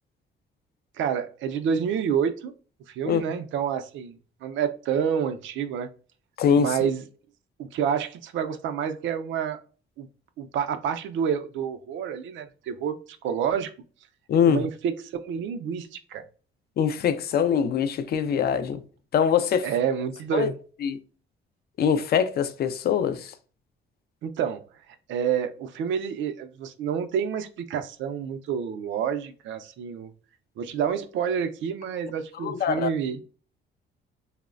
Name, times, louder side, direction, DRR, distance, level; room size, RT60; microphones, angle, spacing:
voice 1, 1.0-2.5 2.9-5.9 6.6-7.1 7.6-9.6 10.0-10.1 10.4-13.7 14.5-16.2 19.6-20.6 24.2-24.6 25.1-30.1 30.6-33.2, right 7 dB, 75° right, 0.4 m, -28 dB
voice 2, 6.4-6.9 14.3-14.7 16.8-18.8 19.1-19.7 20.3-20.5 20.8-21.0 21.8-23.3 32.4-32.9, left 7 dB, 55° left, 0.4 m, -23 dB
3.0 x 2.0 x 2.4 m
cardioid pair, 90°, 20 cm